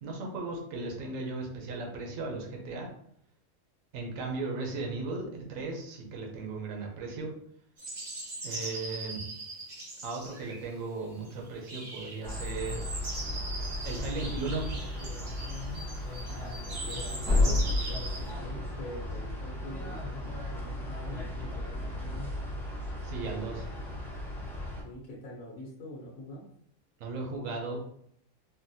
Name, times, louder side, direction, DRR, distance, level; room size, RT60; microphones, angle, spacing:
voice 1, 0.0-2.9 3.9-7.3 8.4-9.2 10.0-12.8 13.8-14.7 23.0-23.7 27.0-27.8, right 3 dB, 80° right, 1 dB, 1.1 m, -36 dB
sound 1, 7.8-10.7 11.2-18.3, right 2 dB, 40° right, 0.7 m, -41 dB
sound 2, 12.2-24.8, left 2 dB, 5° left, 0.3 m, -34 dB
voice 2, 16.3-22.3 24.8-26.4, left 1 dB, 85° left, -4 dB, 1.1 m, -45 dB
3.9 x 2.1 x 2.6 m, 0.69 s
omnidirectional pair, 1.4 m